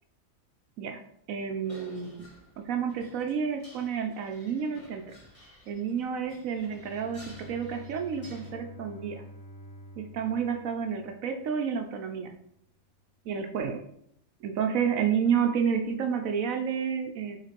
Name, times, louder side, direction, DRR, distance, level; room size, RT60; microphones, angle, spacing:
voice 1, 1.3-2.2 2.6-5.0 5.7-9.2 10.0-12.3 13.3-13.8 14.4-17.4, right 7 dB, 75° right, 5 dB, 1.1 m, -30 dB
sound 1, 1.6-8.5, equal, 25° left, 2.5 m, -53 dB
Bowed string instrument, 6.5-11.5, equal, 65° left, 1.8 m, -48 dB
6.5 x 3.8 x 5.1 m, 0.71 s
omnidirectional pair, 1.5 m